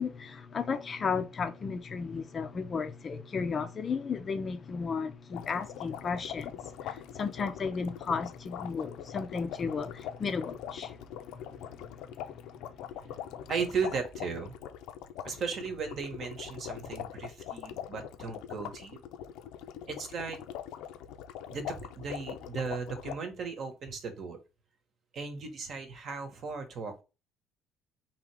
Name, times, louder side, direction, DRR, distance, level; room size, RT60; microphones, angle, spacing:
voice 1, 0.0-6.5 6.8-10.9, left 5 dB, 30° left, 0.5 m, -34 dB
sound 1, 5.3-23.1, left 10 dB, 80° left, 0.5 m, -42 dB
voice 2, 13.5-14.5 15.2-19.0 19.9-20.4 21.5-24.4 25.1-27.0, right 5 dB, 45° right, 1.0 m, -36 dB
3.7 x 2.9 x 4.6 m
cardioid pair, 145°, 0 cm